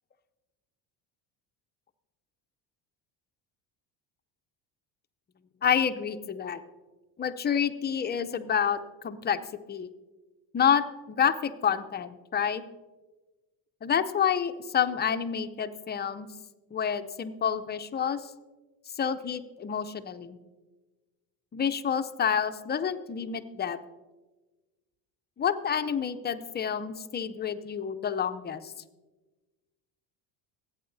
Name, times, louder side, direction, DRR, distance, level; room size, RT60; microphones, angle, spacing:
voice 1, 5.6-6.6 7.2-9.4 9.7-9.9 10.5-12.6 13.8-16.3 16.7-18.3 19.0-20.4 21.5-23.8 25.4-28.7, left 8 dB, 20° left, 9 dB, 0.5 m, -28 dB
16.0 x 8.7 x 2.6 m, 1.2 s
supercardioid pair, 90°, 46 cm